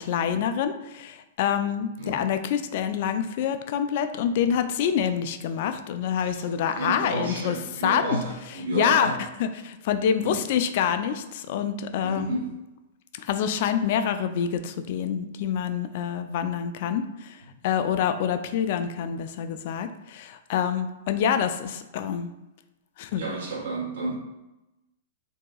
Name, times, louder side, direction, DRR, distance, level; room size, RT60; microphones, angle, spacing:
voice 1, 0.0-12.4 13.2-17.4 17.6-22.3 23.0-23.2, left 8 dB, 55° left, 9 dB, 0.3 m, -27 dB
voice 2, 6.7-9.1 10.2-10.3 12.0-12.5 23.2-24.1, right 2 dB, 70° right, -2 dB, 1.3 m, -31 dB
3.8 x 2.7 x 2.3 m, 0.95 s
hypercardioid pair, 125°, 0 cm